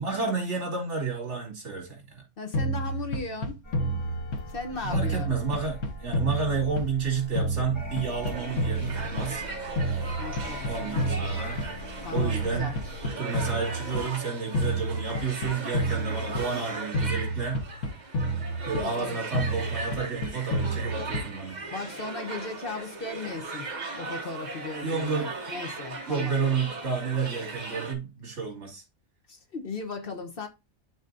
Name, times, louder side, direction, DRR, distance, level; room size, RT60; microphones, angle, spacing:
voice 1, 0.0-2.2 4.8-9.4 10.7-11.6 12.1-12.7 13.0-17.6 18.6-21.6 24.8-25.3 26.1-28.8, right 5 dB, 65° right, 2.7 m, -31 dB
voice 2, 2.4-3.6 4.5-5.3 10.2-11.1 12.0-12.7 18.8-19.1 21.7-23.7 24.0-26.4 29.3-30.5, left 3 dB, 50° left, 1.1 m, -37 dB
sound 1, 2.5-4.6 4.9-7.1 7.4-9.5 9.8-11.9 12.2-14.1 14.5-16.6 16.9-19.0 19.3-21.5, right 1 dB, 80° left, 1.5 m, -30 dB
sound 2, 3.6-13.0, equal, 20° left, 2.1 m, -42 dB
sound 3, 8.2-27.9, right 3 dB, 40° right, 1.0 m, -38 dB
11.0 x 4.1 x 2.6 m
omnidirectional pair, 1.3 m